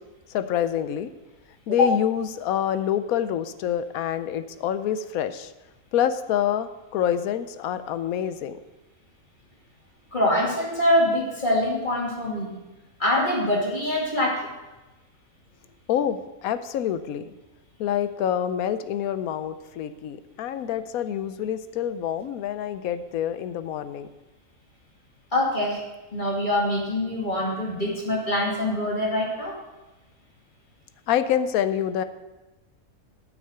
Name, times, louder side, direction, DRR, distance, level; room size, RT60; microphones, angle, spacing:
voice 1, 0.3-1.1 1.7-5.5 5.9-8.6 15.9-17.3 17.8-24.1 31.1-32.0, left 10 dB, 75° left, 12 dB, 1.0 m, -26 dB
voice 2, 10.1-12.6 13.0-14.5 25.3-25.8 26.1-29.5, left 1 dB, 30° left, -3 dB, 2.4 m, -24 dB
9.4 x 6.0 x 6.7 m, 1.1 s
omnidirectional pair, 1.6 m